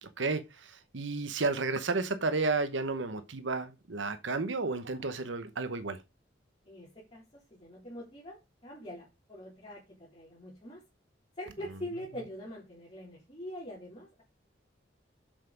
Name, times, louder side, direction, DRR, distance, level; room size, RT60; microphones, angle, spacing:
voice 1, 0.0-6.0, right 3 dB, 80° right, 1.0 m, -32 dB
voice 2, 6.7-7.2 7.5-10.8 11.4-14.1, equal, 30° left, 3.6 m, -44 dB
7.5 x 6.9 x 5.2 m
head